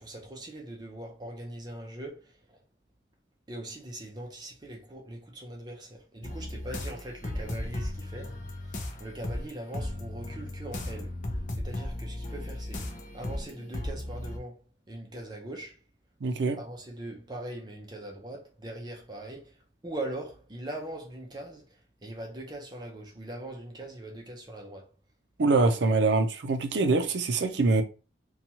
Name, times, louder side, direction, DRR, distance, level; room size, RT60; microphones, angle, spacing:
voice 1, 0.0-2.6 3.5-11.2 11.5-15.8 16.6-24.9, right 1 dB, 25° right, 0.5 m, -41 dB
sound 1, 6.2-14.4, left 1 dB, 40° left, 0.4 m, -36 dB
voice 2, 16.2-16.6 25.4-27.8, right 3 dB, 75° right, 0.5 m, -24 dB
2.9 x 2.3 x 2.7 m
head